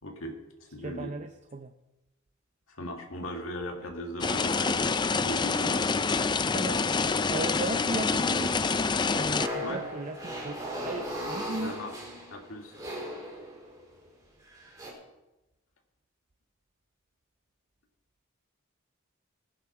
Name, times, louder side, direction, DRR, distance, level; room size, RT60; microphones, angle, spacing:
voice 1, 0.0-1.2 2.7-5.9 9.6-9.8 11.4-12.0 12.3-12.8, equal, 80° left, 2 dB, 2.0 m, -39 dB
voice 2, 0.8-1.7 6.5-6.8 7.3-11.8, right 2 dB, 35° right, 6 dB, 0.6 m, -36 dB
sound 1, 4.2-9.5, left 4 dB, 20° left, 0.4 m, -27 dB
sound 2, 9.4-13.8 14.5-14.9, equal, 15° right, 4.3 m, -37 dB
18.5 x 8.2 x 5.9 m, 1.0 s
head